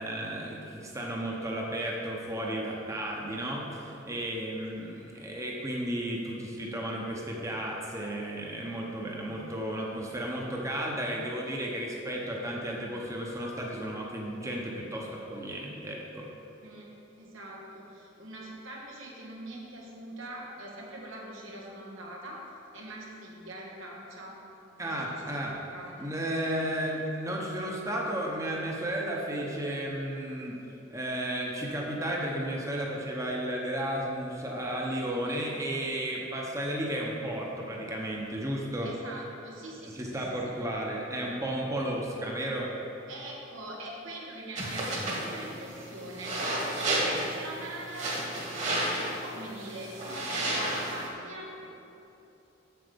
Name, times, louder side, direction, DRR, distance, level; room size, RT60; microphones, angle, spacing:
voice 1, 0.0-16.3 24.8-25.5 26.0-30.6 30.9-38.9 39.9-42.7, right 1 dB, 15° right, -2 dB, 0.9 m, -33 dB
voice 2, 17.2-22.4 22.7-24.3 24.8-26.1 35.1-35.4 38.8-40.5 42.1-42.2 43.1-46.4 46.9-51.7, right 1 dB, 85° right, -3 dB, 1.7 m, -43 dB
sound 1, 44.6-51.1, right 1 dB, 35° right, 1.7 m, -32 dB
7.8 x 7.2 x 5.2 m, 3.0 s
head